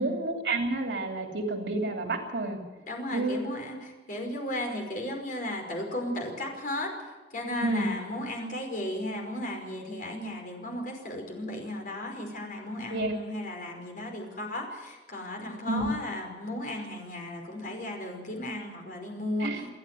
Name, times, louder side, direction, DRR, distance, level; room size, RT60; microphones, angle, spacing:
voice 1, 0.0-2.6 3.1-3.4 7.6-7.9 12.9-13.2 15.7-15.9 19.4-19.7, right 2 dB, 80° right, 2 dB, 3.0 m, -29 dB
voice 2, 2.9-6.9 7.3-19.5, left 1 dB, 50° left, 2 dB, 5.4 m, -35 dB
29.0 x 10.5 x 9.4 m, 1.2 s
head